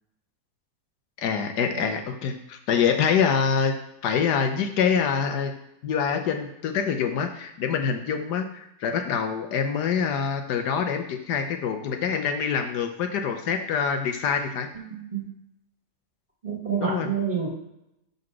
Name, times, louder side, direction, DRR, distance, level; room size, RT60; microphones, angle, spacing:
voice 1, 1.2-3.8 4.0-5.5 5.8-14.7 16.8-17.1, left 6 dB, 85° left, 6 dB, 1.4 m, -25 dB
voice 2, 14.7-15.3 16.4-17.5, right 6 dB, 35° right, -3 dB, 1.8 m, -29 dB
5.3 x 4.1 x 6.0 m, 0.81 s
omnidirectional pair, 1.7 m